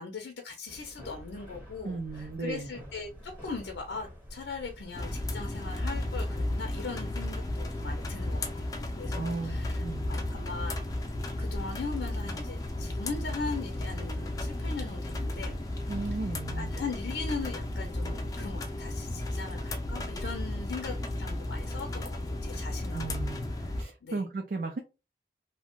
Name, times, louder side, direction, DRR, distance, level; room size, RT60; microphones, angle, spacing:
voice 1, 0.0-8.7 9.0-10.8 11.4-15.6 16.0-16.1 16.6-23.0 23.5-23.7 24.0-24.2, left 4 dB, 85° left, 3 dB, 0.5 m, -40 dB
sound 1, 0.7-16.3, equal, 10° right, 0.9 m, -49 dB
voice 2, 1.8-2.7 9.2-10.1 15.9-16.8 22.9-23.5 23.8-24.8, right 3 dB, 55° right, 3 dB, 0.4 m, -35 dB
sound 2, 4.9-23.8, left 1 dB, 20° left, 0.3 m, -34 dB
2.8 x 2.1 x 2.9 m, 0.28 s
head